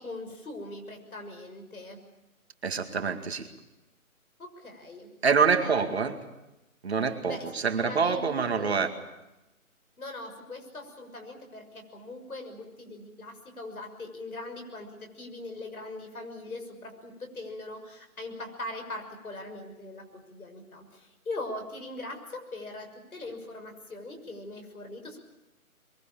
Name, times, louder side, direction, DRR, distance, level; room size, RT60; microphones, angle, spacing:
voice 1, 0.0-2.0 4.4-5.1 5.6-5.7 7.3-7.5 7.8-8.9 10.0-25.2, left 2 dB, 75° left, 5 dB, 6.4 m, -41 dB
voice 2, 2.6-3.5 5.2-6.2 6.8-8.9, right 5 dB, 45° right, 7 dB, 2.2 m, -26 dB
23.0 x 22.0 x 8.7 m, 0.95 s
hypercardioid pair, 170°, 43 cm